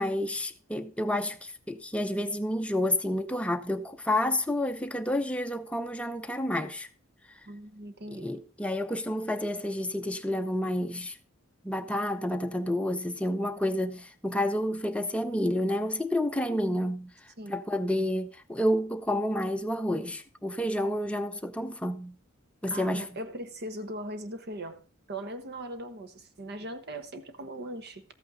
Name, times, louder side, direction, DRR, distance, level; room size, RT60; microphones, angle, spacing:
voice 1, 0.0-6.9 8.1-11.2 11.6-17.1 17.5-22.1 22.6-23.1, left 1 dB, 5° left, 0.7 m, -29 dB
voice 2, 7.5-8.3 17.4-17.6 22.7-28.0, right 1 dB, 55° right, 1.2 m, -39 dB
13.5 x 8.5 x 3.9 m
head